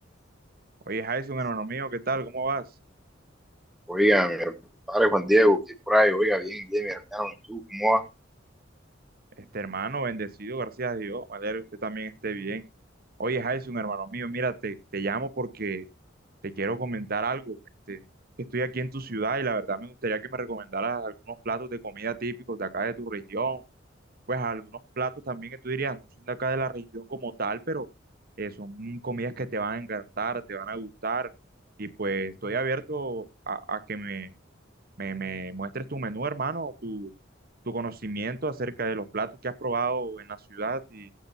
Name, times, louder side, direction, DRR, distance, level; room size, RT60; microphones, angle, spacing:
voice 1, 0.9-2.7 9.4-12.6 13.2-15.9 16.4-17.6 17.9-18.0 18.5-23.6 24.3-27.9 28.4-31.3 31.8-34.3 35.0-37.1 37.6-41.1, right 3 dB, 50° right, 1.2 m, -31 dB
voice 2, 3.9-4.5 4.9-5.6 5.9-8.0, equal, ahead, 1.5 m, -22 dB
19.0 x 9.0 x 2.8 m
head